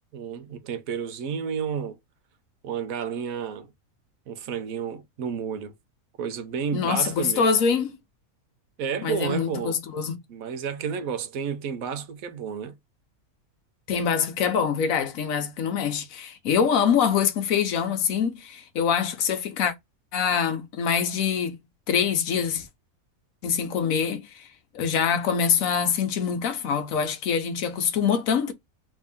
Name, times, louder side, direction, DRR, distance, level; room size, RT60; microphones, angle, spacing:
voice 1, 0.1-2.0 2.6-3.7 4.3-5.7 6.2-7.5 8.8-9.7 10.3-12.8, right 7 dB, 75° right, 1.1 m, -31 dB
voice 2, 6.7-8.0 9.0-10.2 13.9-19.7 20.1-21.6 21.9-22.7 23.4-24.5 24.7-28.5, left 7 dB, 75° left, 1.1 m, -24 dB
3.4 x 2.7 x 3.4 m
omnidirectional pair, 1.5 m